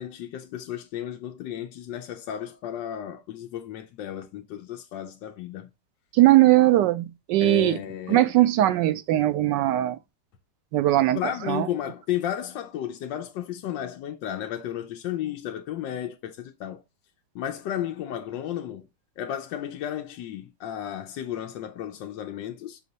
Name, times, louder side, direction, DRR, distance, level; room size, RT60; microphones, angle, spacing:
voice 1, 0.0-5.7 7.4-8.3 8.6-8.8 11.1-16.8 17.3-18.9 19.2-22.8, left 10 dB, 80° left, 1.4 m, -33 dB
voice 2, 6.1-7.8 8.1-10.0 10.7-11.2 11.5-11.7, right 15 dB, 75° right, 1.2 m, -20 dB
6.3 x 2.8 x 5.3 m
omnidirectional pair, 2.0 m